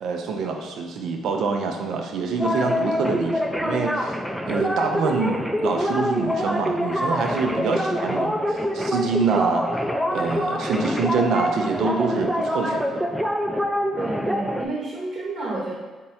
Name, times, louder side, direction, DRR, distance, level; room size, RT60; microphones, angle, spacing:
voice 1, 0.0-4.2 4.5-9.6 10.1-13.1, right 4 dB, 70° right, 3 dB, 0.4 m, -26 dB
sound 1, 2.4-14.7, equal, ahead, 0.4 m, -25 dB
voice 2, 14.0-15.7, right 2 dB, 55° right, -4 dB, 0.9 m, -29 dB
3.5 x 2.1 x 4.1 m, 1.2 s
supercardioid pair, 60°, 0 cm